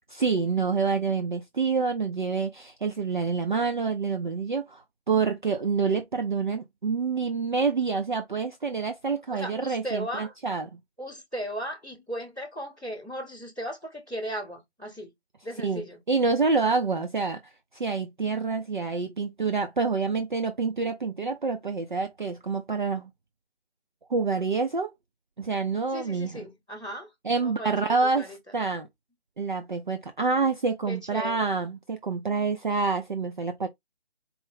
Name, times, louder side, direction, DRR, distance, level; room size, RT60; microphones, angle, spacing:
voice 1, 0.1-10.7 15.6-17.4 17.7-23.1 24.1-24.9 25.4-26.5 27.2-28.9 29.4-33.7, right 4 dB, 45° right, 0.5 m, -27 dB
voice 2, 9.3-10.3 11.0-15.1 15.4-16.0 25.9-27.1 27.4-28.3 30.9-31.4, equal, 5° right, 0.6 m, -36 dB
4.4 x 2.0 x 3.6 m
figure-of-eight pair, 150°, 33 cm